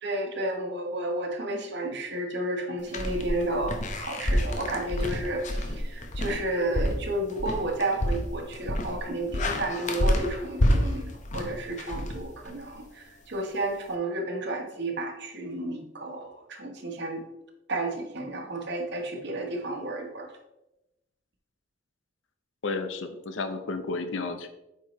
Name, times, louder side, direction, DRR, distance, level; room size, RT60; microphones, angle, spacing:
voice 1, 0.0-17.2 17.7-20.3, right 1 dB, 60° right, 2 dB, 1.1 m, -32 dB
sound 1, 2.9-12.7, left 1 dB, 40° left, 0.8 m, -29 dB
voice 2, 22.6-24.5, left 3 dB, 90° left, 7 dB, 0.6 m, -32 dB
8.1 x 4.6 x 3.1 m, 0.93 s
head